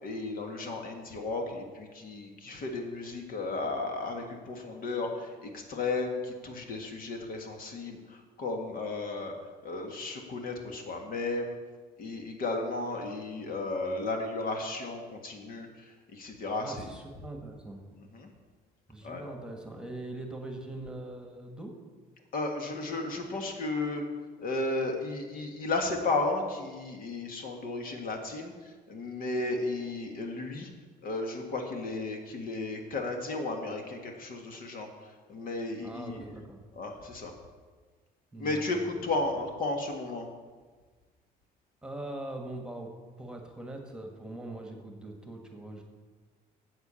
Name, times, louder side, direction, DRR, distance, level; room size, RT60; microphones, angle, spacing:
voice 1, 0.0-8.0 8.4-9.3 9.6-11.5 12.0-15.7 16.1-16.8 18.1-18.3 19.0-19.2 22.3-24.0 24.4-28.5 28.9-30.7 31.0-34.9 35.3-36.2 36.8-37.3 38.4-40.3, left 2 dB, 60° left, 3 dB, 1.7 m, -34 dB
voice 2, 16.6-17.8 18.9-21.7 35.8-36.6 38.3-38.8 41.8-42.9 43.2-45.8, right 2 dB, 5° right, 2 dB, 1.6 m, -42 dB
8.2 x 8.1 x 7.0 m, 1.4 s
cardioid pair, 110°, 17 cm